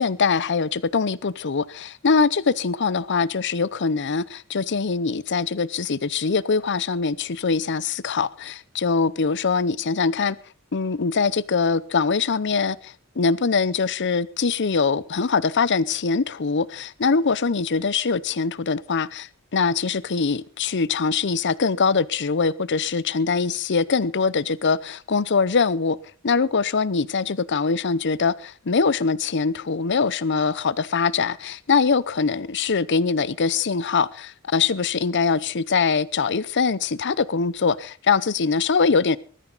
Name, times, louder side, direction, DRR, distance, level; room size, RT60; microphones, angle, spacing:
voice 1, 0.0-10.4 10.7-26.0 26.2-39.2, left 5 dB, 55° left, 0.7 m, -23 dB
20.0 x 14.0 x 4.0 m
head